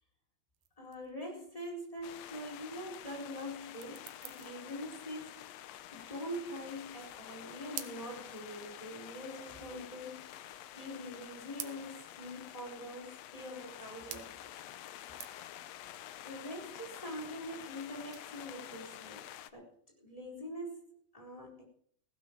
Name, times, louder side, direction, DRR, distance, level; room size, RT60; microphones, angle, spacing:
sound 1, 0.5-20.3, right 11 dB, 75° right, 2.6 m, -52 dB
voice 1, 0.8-5.4 5.9-14.5 16.2-19.7 20.0-21.7, equal, 10° left, 0 dB, 4.2 m, -44 dB
sound 2, 2.0-19.5, left 12 dB, 80° left, 1.5 m, -49 dB
16.0 x 12.0 x 4.6 m, 0.62 s
omnidirectional pair, 3.8 m